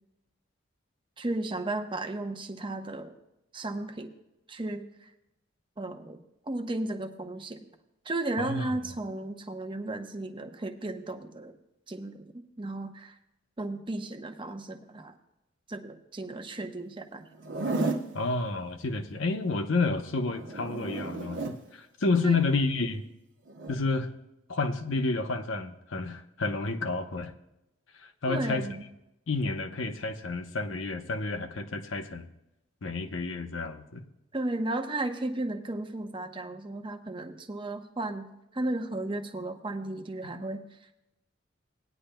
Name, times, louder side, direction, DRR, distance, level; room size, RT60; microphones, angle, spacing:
voice 1, 1.2-3.1 3.5-4.1 4.5-5.1 5.8-7.6 8.0-11.6 11.9-12.3 12.6-13.2 13.6-15.1 15.7-17.3 22.2-22.4 28.3-28.8 34.3-38.3 38.5-40.6, right 2 dB, 25° right, 6 dB, 0.8 m, -34 dB
voice 2, 8.4-8.7 18.1-23.0 23.7-24.1 24.5-27.3 27.9-28.7 29.3-32.3 32.8-34.0, left 3 dB, 90° left, 6 dB, 0.9 m, -30 dB
Zipper (clothing), 17.3-18.1 20.3-21.6 23.5-23.8, right 3 dB, 70° right, 0.9 m, -32 dB
18.5 x 10.0 x 2.2 m, 0.89 s
head